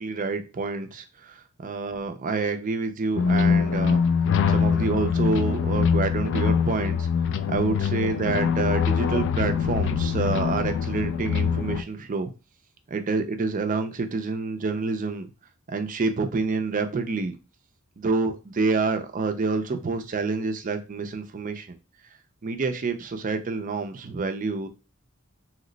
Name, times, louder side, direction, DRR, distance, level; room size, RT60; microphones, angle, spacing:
voice 1, 0.0-4.0 4.5-7.1 7.5-12.3 12.9-15.3 15.7-17.4 18.0-21.8 22.4-24.7, right 4 dB, 40° right, 7 dB, 0.4 m, -28 dB
sound 1, 3.2-11.8, left 6 dB, 60° left, 0.3 m, -23 dB
2.8 x 2.1 x 3.8 m, 0.30 s
head